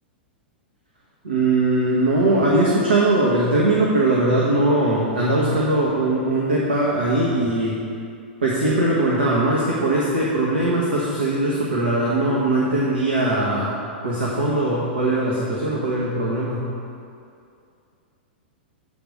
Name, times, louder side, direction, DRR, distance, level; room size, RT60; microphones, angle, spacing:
voice 1, 1.2-7.8 8.4-13.8 14.0-16.7, right 2 dB, 85° right, -5 dB, 1.1 m, -20 dB
7.8 x 3.6 x 6.4 m, 2.5 s
hypercardioid pair, 105°, 6 cm